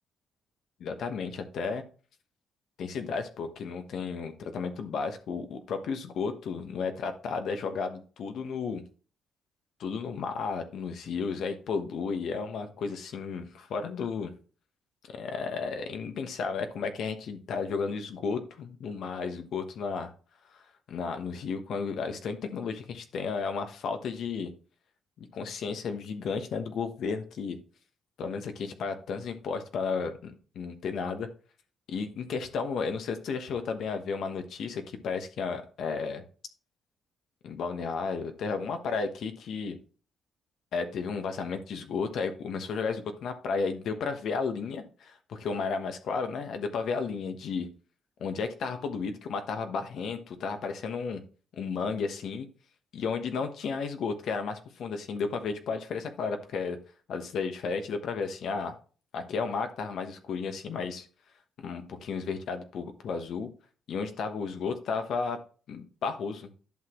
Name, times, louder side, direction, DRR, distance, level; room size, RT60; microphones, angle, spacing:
voice 1, 0.8-1.8 2.8-8.8 9.8-14.3 15.1-20.1 20.5-20.6 20.9-24.5 25.2-27.6 28.2-31.3 31.9-36.2 37.4-39.8 40.7-47.7 48.2-51.2 51.5-52.5 52.9-56.8 57.1-58.8 59.1-61.1 61.6-63.5 63.9-65.4 65.7-66.5, left 5 dB, 70° left, 7 dB, 1.2 m, -33 dB
11.0 x 6.1 x 3.1 m, 0.39 s
cardioid pair, 90°, 0 cm